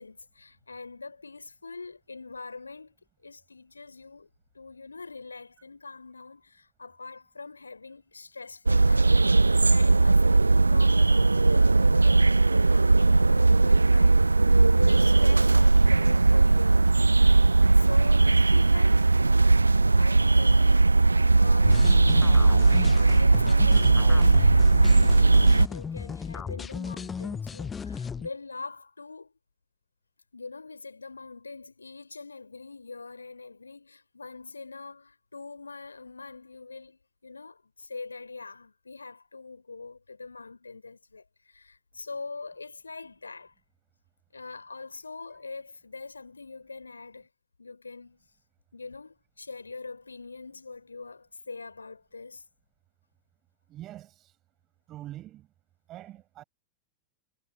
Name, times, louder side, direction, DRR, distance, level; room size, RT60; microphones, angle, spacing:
voice 1, 0.0-2.9 3.2-4.3 4.5-9.1 9.4-16.9 17.7-19.6 19.9-21.9 22.9-29.3 30.3-43.5 44.3-47.3 47.6-48.3 48.7-52.4, left 4 dB, 80° left, 4.6 m, -43 dB
sound 1, 8.7-25.7, right 3 dB, 80° right, 0.4 m, -19 dB
sound 2, 21.6-28.3, left 6 dB, 20° left, 0.4 m, -36 dB
voice 2, 53.7-54.4 54.9-55.5 55.9-56.4, right 14 dB, 35° right, 7.3 m, -44 dB
figure-of-eight pair, 90°, 0 cm